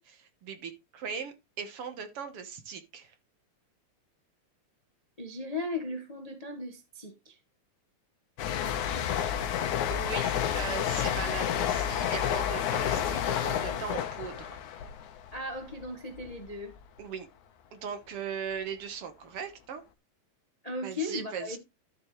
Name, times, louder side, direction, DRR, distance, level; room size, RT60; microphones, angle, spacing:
voice 1, 0.0-3.1 9.1-9.4 9.9-14.6 17.0-17.3 17.7-19.8 20.8-21.6, right 6 dB, 60° right, 1.9 m, -39 dB
voice 2, 5.2-7.4 15.3-16.7 20.6-21.6, left 2 dB, 60° left, 0.4 m, -37 dB
sound 1, 8.4-15.9 16.2-16.5, left 9 dB, 85° left, 2.5 m, -30 dB
12.5 x 6.9 x 3.2 m
omnidirectional pair, 3.4 m